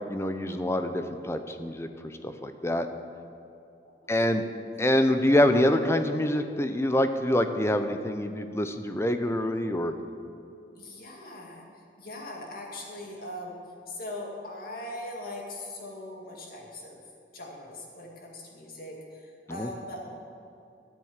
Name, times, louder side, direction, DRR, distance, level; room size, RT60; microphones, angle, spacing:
voice 1, 0.1-2.9 4.1-4.4 4.8-9.9 19.5-19.7, left 1 dB, 15° left, 8 dB, 0.6 m, -26 dB
voice 2, 10.8-13.6 13.9-17.0 17.3-20.1, left 1 dB, 55° left, -1 dB, 2.1 m, -40 dB
13.0 x 7.7 x 7.3 m, 2.6 s
head